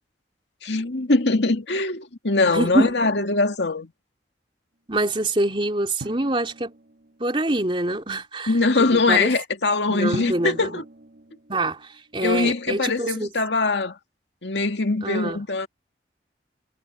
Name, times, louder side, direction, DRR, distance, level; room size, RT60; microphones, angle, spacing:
voice 1, 0.6-3.9 8.5-10.8 12.2-14.0 14.4-15.7, left 3 dB, 80° left, 2.2 m, -22 dB
voice 2, 2.4-2.9 4.9-6.7 7.2-9.3 9.9-10.7 11.5-13.3 15.0-15.4, right 1 dB, 30° right, 3.2 m, -25 dB
Drum, 6.0-7.5 10.1-12.3, right 2 dB, 65° right, 1.7 m, -41 dB
head